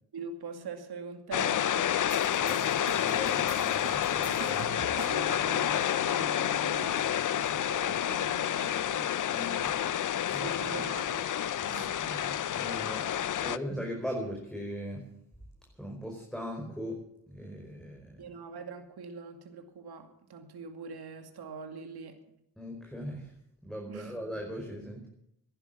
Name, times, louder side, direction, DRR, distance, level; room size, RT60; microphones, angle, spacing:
voice 1, 0.1-1.9 2.6-3.0 5.1-9.1 10.3-11.3 11.6-11.9 18.2-22.2 23.9-24.1, right 5 dB, 60° right, 6 dB, 2.5 m, -43 dB
sound 1, 1.3-13.6, left 10 dB, 45° left, 0.7 m, -29 dB
sound 2, 2.1-5.4, right 8 dB, 35° right, 0.8 m, -45 dB
voice 2, 2.3-4.8 8.5-8.8 9.3-9.8 10.3-10.8 11.6-13.1 13.4-15.1 15.7-18.3 22.6-23.3 23.6-25.1, equal, ahead, 0 dB, 4.9 m, -40 dB
16.0 x 11.5 x 7.5 m, 0.79 s
supercardioid pair, 60°, 43 cm